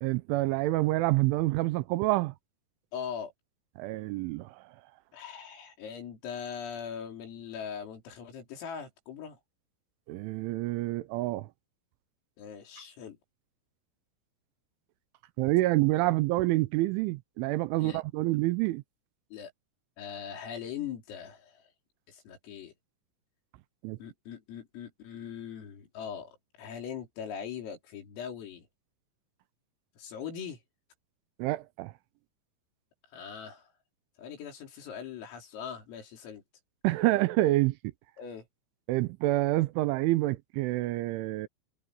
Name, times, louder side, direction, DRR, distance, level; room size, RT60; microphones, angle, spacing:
voice 1, 0.0-2.3 3.8-4.6 10.1-11.5 15.4-18.8 23.8-24.0 31.4-31.9 36.8-37.7 38.9-41.5, right 18 dB, 80° right, 3.0 m, -27 dB
voice 2, 2.9-3.3 5.1-9.4 12.4-13.2 17.8-18.0 19.3-19.5 20.0-21.6 22.1-22.7 24.0-26.3 26.6-28.7 30.0-30.6 33.1-33.7 34.2-36.4 38.2-38.5, left 7 dB, 85° left, 7.1 m, -41 dB
omnidirectional pair, 5.8 m